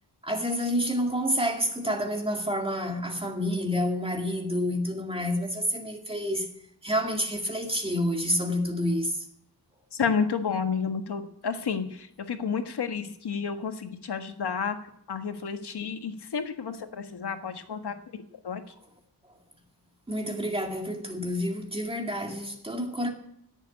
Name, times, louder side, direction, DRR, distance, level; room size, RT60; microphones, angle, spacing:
voice 1, 0.2-6.5 6.8-9.2 20.1-23.1, equal, 15° right, 2.2 m, -28 dB
voice 2, 9.9-14.8 15.1-18.6, left 6 dB, 70° left, 1.6 m, -31 dB
16.5 x 7.4 x 9.5 m
wide cardioid pair, 165°, 41 cm